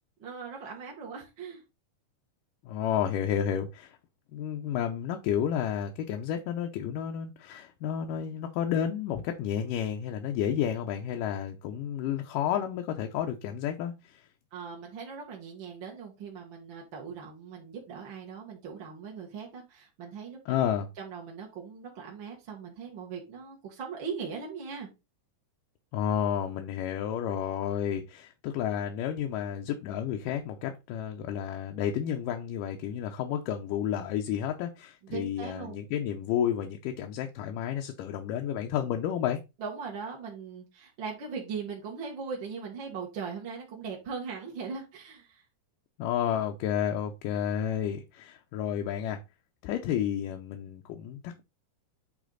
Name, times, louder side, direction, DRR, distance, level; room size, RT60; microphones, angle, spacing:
voice 1, 0.2-1.6 14.5-20.6 21.0-24.9 35.0-35.8 39.6-45.4, right 5 dB, 45° right, 1.8 m, -39 dB
voice 2, 2.7-3.9 4.3-14.2 20.5-20.9 25.9-39.4 46.0-49.2 49.6-51.4, left 9 dB, 80° left, 2.3 m, -31 dB
8.4 x 3.5 x 3.8 m
omnidirectional pair, 3.8 m